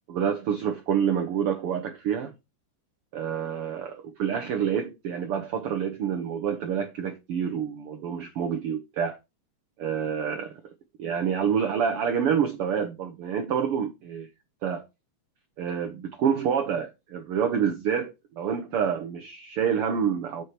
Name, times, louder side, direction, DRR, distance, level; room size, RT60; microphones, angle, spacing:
voice 1, 0.1-2.3 3.1-9.2 9.8-10.6 11.0-14.3 14.6-14.9 15.6-20.4, right 7 dB, 90° right, 1.2 m, -27 dB
8.3 x 4.7 x 4.4 m
omnidirectional pair, 3.7 m